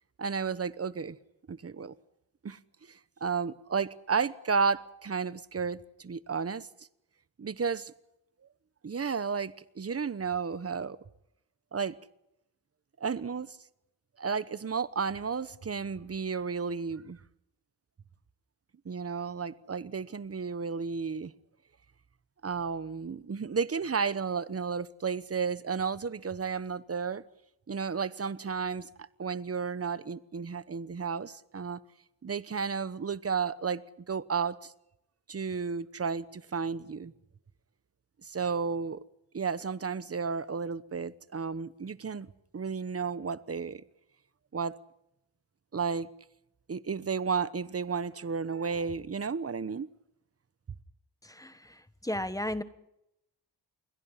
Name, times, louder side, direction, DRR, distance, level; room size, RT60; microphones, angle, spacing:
voice 1, 0.2-1.2 1.5-1.9 2.4-2.6 2.9-6.7 7.4-7.9 8.8-11.0 11.7-12.0 13.0-13.6 14.2-17.2 18.8-21.3 22.4-27.2 27.7-31.8 32.2-33.8 34.1-34.7 35.3-37.1 38.2-39.0 39.3-42.3 42.5-43.8 44.5-44.8 45.7-46.1 46.7-49.9, right 5 dB, 35° right, 1.0 m, -32 dB
voice 2, 51.2-52.6, left 1 dB, 10° left, 1.3 m, -35 dB
29.0 x 22.5 x 5.7 m
wide cardioid pair, 150°, 43 cm